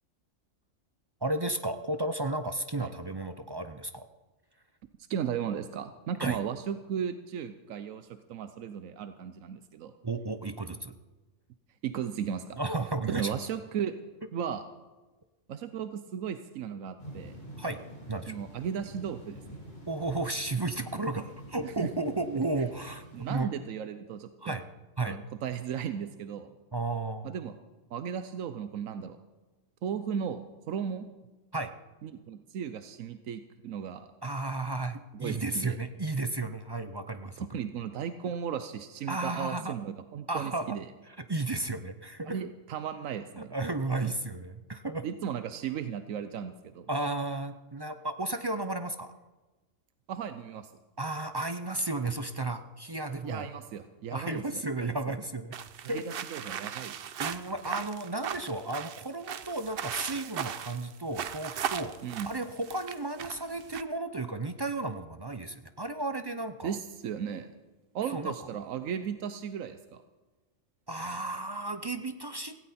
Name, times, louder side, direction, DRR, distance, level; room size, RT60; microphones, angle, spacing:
voice 1, 1.2-4.0 6.2-6.4 10.0-10.9 12.6-13.3 17.6-17.8 18.1-18.3 19.9-23.5 24.4-24.6 25.0-25.2 26.7-27.4 31.5-31.7 34.2-37.5 39.1-39.7 40.3-40.8 41.1-42.4 43.4-45.0 46.9-49.1 51.0-53.5 54.1-55.6 55.9-56.0 57.2-61.9 62.3-66.7 68.1-68.3 70.9-72.6, right 2 dB, 35° right, 9 dB, 0.4 m, -33 dB
voice 2, 5.1-9.9 11.8-12.6 13.1-14.0 14.3-14.7 15.5-17.4 18.3-19.6 21.6-21.9 22.6-22.7 23.1-24.6 25.0-26.5 27.2-27.6 27.9-29.2 29.8-31.1 32.0-34.1 35.1-35.8 37.4-40.9 42.2-43.5 45.0-46.9 50.1-50.7 53.2-54.4 55.8-57.0 62.0-62.3 66.6-67.5 67.9-70.0, right 8 dB, 90° right, 10 dB, 1.1 m, -36 dB
sound 1, 17.0-23.4, right 1 dB, 40° left, 5.2 m, -47 dB
sound 2, 55.5-63.8, right 8 dB, 55° right, 0.7 m, -37 dB
17.0 x 16.0 x 4.2 m, 1.2 s
omnidirectional pair, 1.3 m